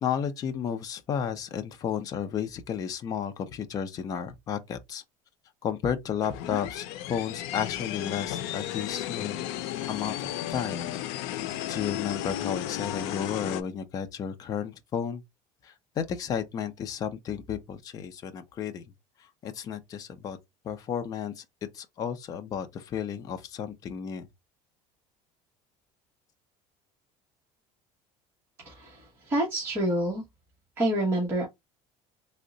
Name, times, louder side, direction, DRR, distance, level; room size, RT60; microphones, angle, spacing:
voice 1, 0.0-5.0 5.6-9.5 9.9-10.9 11.2-15.2 15.6-18.8 19.4-20.4 20.6-21.4 21.7-24.3, left 8 dB, 25° left, 0.5 m, -33 dB
sound 1, 6.2-13.6, left 13 dB, 85° left, 0.5 m, -34 dB
voice 2, 28.6-30.2 30.8-31.5, right 1 dB, 15° right, 0.9 m, -27 dB
3.5 x 2.1 x 3.8 m
cardioid pair, 170°, 14 cm